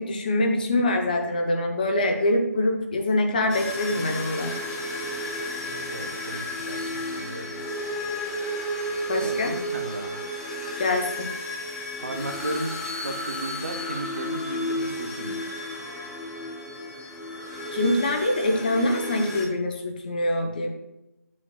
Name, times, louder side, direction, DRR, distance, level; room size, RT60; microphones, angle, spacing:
voice 1, 0.0-4.6 9.1-9.5 10.8-11.3 17.7-20.7, left 1 dB, 35° left, 3 dB, 0.9 m, -24 dB
sound 1, 3.5-19.5, left 1 dB, 5° left, 0.4 m, -32 dB
voice 2, 5.9-6.8 7.1-7.6 9.2-10.2 12.0-15.4, right 2 dB, 55° right, 5 dB, 1.0 m, -35 dB
9.1 x 6.4 x 2.4 m, 0.94 s
figure-of-eight pair, 155°, 9 cm